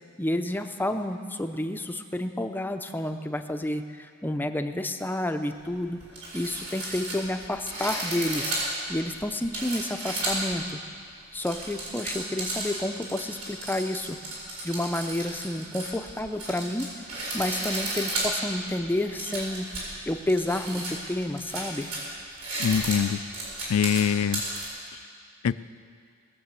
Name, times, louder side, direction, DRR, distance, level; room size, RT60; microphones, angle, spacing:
voice 1, 0.2-6.0 6.3-8.6 8.9-10.8 11.3-14.2 14.6-16.9 17.3-19.7 20.1-21.9, left 1 dB, 10° left, 7 dB, 0.5 m, -30 dB
sound 1, 5.6-5.7 6.0-10.6 11.2-24.7, right 2 dB, 70° right, 4.9 m, -33 dB
voice 2, 22.6-23.2 23.7-24.4 25.4-25.6, left 8 dB, 70° left, 16 dB, 0.4 m, -23 dB
19.5 x 6.8 x 8.1 m, 2.1 s
head